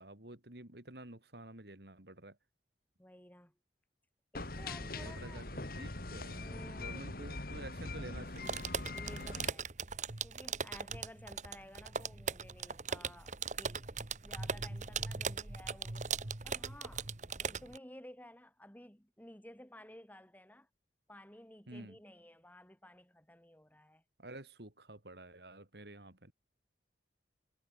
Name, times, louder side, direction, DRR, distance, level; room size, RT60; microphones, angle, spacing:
voice 1, 0.0-2.4 4.8-8.6 21.7-22.0 24.2-26.3, right 1 dB, 65° right, 3.4 m, -50 dB
voice 2, 3.0-3.5 4.3-5.4 6.3-7.1 8.9-9.7 10.2-13.8 14.2-16.1 16.4-17.1 17.4-20.7 21.1-24.0, left 1 dB, 10° left, 4.6 m, -54 dB
sound 1, 4.3-9.5, left 2 dB, 55° left, 2.7 m, -42 dB
sound 2, 8.3-17.8, right 5 dB, 45° right, 1.4 m, -39 dB
head